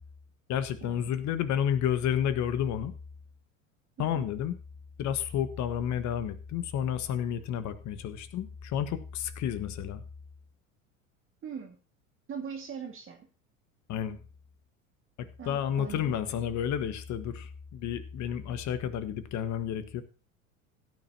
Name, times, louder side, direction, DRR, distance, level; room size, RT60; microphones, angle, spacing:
voice 1, 0.5-2.9 4.0-4.6 5.0-10.0 13.9-14.2 15.2-20.0, left 9 dB, 45° left, 11 dB, 1.4 m, -31 dB
voice 2, 11.4-11.8 12.3-13.3 15.4-16.2, right 7 dB, 30° right, 1 dB, 1.9 m, -41 dB
16.0 x 9.6 x 2.8 m, 0.35 s
hypercardioid pair, 80°, 41 cm